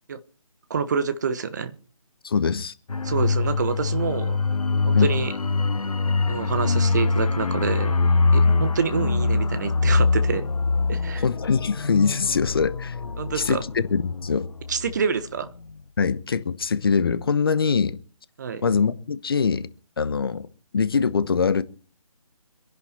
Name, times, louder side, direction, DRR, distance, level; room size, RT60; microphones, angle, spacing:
voice 1, 0.7-1.7 3.0-4.4 4.9-5.3 6.3-8.0 8.3-10.5 10.9-11.2 13.2-13.6 14.7-15.5 18.4-18.6, right 6 dB, 30° right, 1.2 m, -27 dB
voice 2, 2.2-2.7 4.9-5.1 11.2-13.0 13.3-14.5 16.0-18.0 18.6-19.7 20.0-20.5 20.7-21.6, left 5 dB, 40° left, 1.0 m, -23 dB
sound 1, 2.9-15.2 15.5-15.7, left 3 dB, 75° left, 1.0 m, -23 dB
25.5 x 11.0 x 4.3 m
figure-of-eight pair, 160°, 19 cm